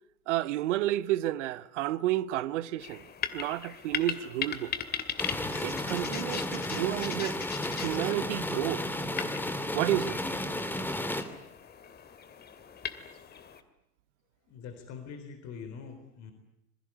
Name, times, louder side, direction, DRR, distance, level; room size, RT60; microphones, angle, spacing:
voice 1, 0.3-3.0 3.3-4.7 5.6-7.4 7.8-8.9 9.7-10.2, right 14 dB, 55° right, 1.1 m, -31 dB
sound 1, 2.8-13.6, left 8 dB, 20° left, 2.2 m, -39 dB
sound 2, 5.2-11.2, left 1 dB, 5° left, 2.7 m, -33 dB
voice 2, 14.5-16.3, left 6 dB, 40° left, 3.9 m, -43 dB
26.5 x 22.5 x 9.7 m
figure-of-eight pair, 90°, 44 cm